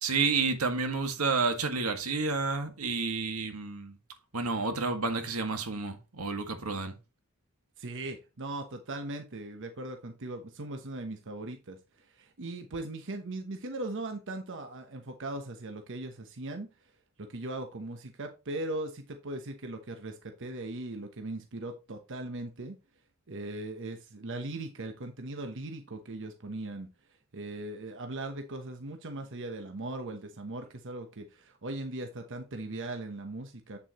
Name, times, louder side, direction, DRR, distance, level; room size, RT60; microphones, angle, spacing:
voice 1, 0.0-4.0 4.3-6.9, right 4 dB, 90° right, 1.7 m, -30 dB
voice 2, 7.8-16.7 17.2-22.8 23.3-26.9 27.3-33.8, right 2 dB, 60° right, 1.1 m, -39 dB
8.5 x 7.3 x 3.0 m
head